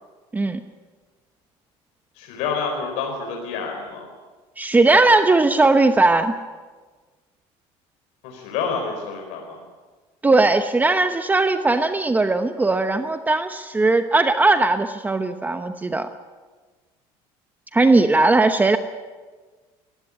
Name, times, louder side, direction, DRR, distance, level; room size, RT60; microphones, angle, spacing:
voice 1, 2.2-4.1 8.2-9.6, left 5 dB, 80° left, 2 dB, 4.6 m, -28 dB
voice 2, 4.6-6.3 10.2-16.1 17.7-18.8, right 3 dB, 15° right, 8 dB, 0.9 m, -18 dB
20.5 x 15.5 x 9.8 m, 1.4 s
cardioid pair, 125°, 12 cm